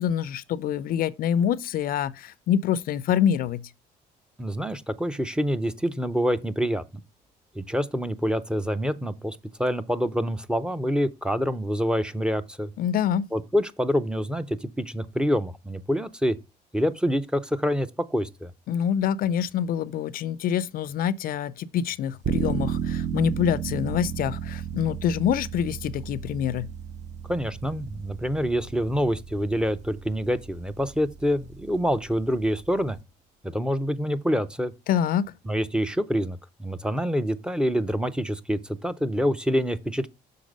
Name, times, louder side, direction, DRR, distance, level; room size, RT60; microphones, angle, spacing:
voice 1, 0.0-3.7 12.8-13.3 18.7-26.7 34.9-35.3, left 9 dB, 60° left, 0.4 m, -26 dB
voice 2, 4.4-6.8 7.6-12.7 13.3-16.4 16.7-18.5 27.3-33.0 33.4-34.7 35.4-40.1, equal, 5° right, 0.6 m, -26 dB
sound 1, 22.2-33.0, right 8 dB, 45° right, 0.6 m, -34 dB
6.4 x 4.0 x 5.1 m
cardioid pair, 110°, 17 cm